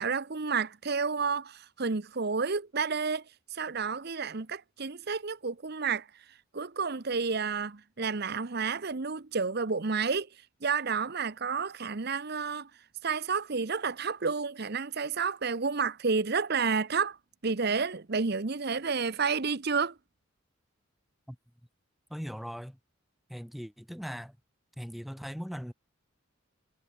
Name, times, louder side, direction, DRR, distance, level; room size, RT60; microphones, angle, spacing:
voice 1, 0.0-3.2 3.5-6.1 6.5-10.3 10.6-12.7 13.0-17.2 17.4-19.9, right 5 dB, 55° right, 0.9 m, -30 dB
voice 2, 22.1-22.8 23.3-24.4 24.8-25.7, equal, ahead, 3.3 m, -39 dB
head